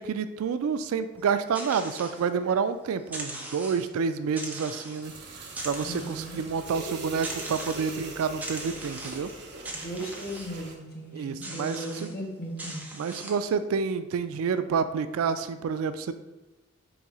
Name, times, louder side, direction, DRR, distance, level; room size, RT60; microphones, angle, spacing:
voice 1, 0.0-5.1 5.6-9.3 11.1-12.1 12.9-16.1, right 6 dB, 70° right, 11 dB, 0.3 m, -29 dB
sound 1, 1.2-2.7 3.0-4.0 4.4-5.1 5.5-6.5 7.2-8.0 8.4-9.4 9.7-10.6 11.4-12.1 12.6-13.5, right 1 dB, 5° right, 0.5 m, -40 dB
sound 2, 5.0-10.8, right 3 dB, 50° right, 0.7 m, -42 dB
voice 2, 5.8-6.4 9.7-12.8, right 1 dB, 45° left, -1 dB, 1.0 m, -37 dB
4.0 x 2.7 x 4.7 m, 1.1 s
head